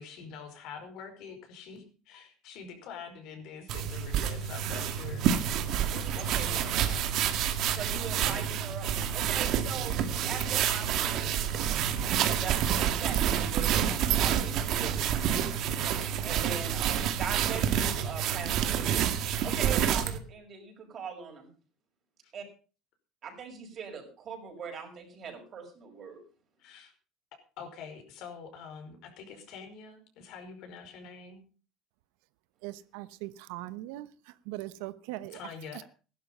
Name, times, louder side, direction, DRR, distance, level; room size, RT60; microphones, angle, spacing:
voice 1, 0.0-5.6 5.9-7.2 26.6-26.9 27.6-31.4 35.3-35.8, left 6 dB, 65° left, 5 dB, 5.1 m, -45 dB
sound 1, 3.7-20.2, right 9 dB, 60° right, 2.0 m, -28 dB
voice 2, 6.1-6.5 7.8-15.0 16.2-19.0 19.4-21.5 22.3-22.4 23.2-26.2, right 6 dB, 40° right, 3 dB, 5.9 m, -41 dB
voice 3, 32.6-34.1 34.5-35.4, right 17 dB, 90° right, 15 dB, 0.9 m, -40 dB
15.5 x 12.0 x 5.5 m, 0.37 s
cardioid pair, 130°, 0 cm